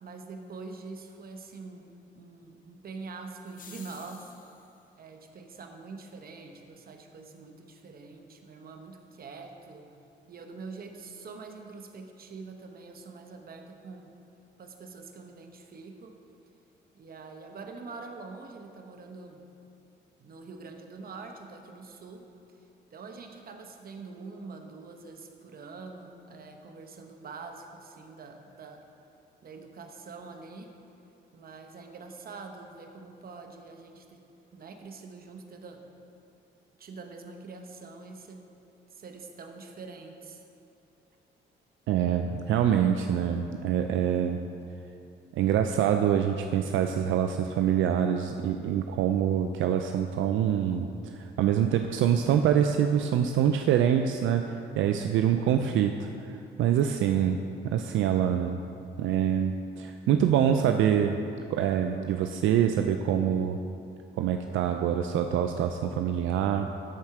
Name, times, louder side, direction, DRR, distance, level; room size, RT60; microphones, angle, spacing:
voice 1, 0.0-4.3 5.0-9.9 10.3-14.1 14.6-16.2 16.9-19.5 20.2-22.3 22.9-28.9 29.4-30.7 31.3-34.2 34.5-35.8 36.8-38.4 38.9-40.5 56.8-57.3, right 4 dB, 50° right, 4 dB, 0.9 m, -45 dB
sound 1, 3.5-4.8, left 6 dB, 45° left, 0.8 m, -51 dB
voice 2, 41.9-44.4 45.3-58.6 59.0-61.2 61.5-63.6 64.2-66.7, right 9 dB, 75° right, 6 dB, 0.4 m, -25 dB
13.0 x 4.4 x 4.8 m, 2.7 s
cardioid pair, 90°, 20 cm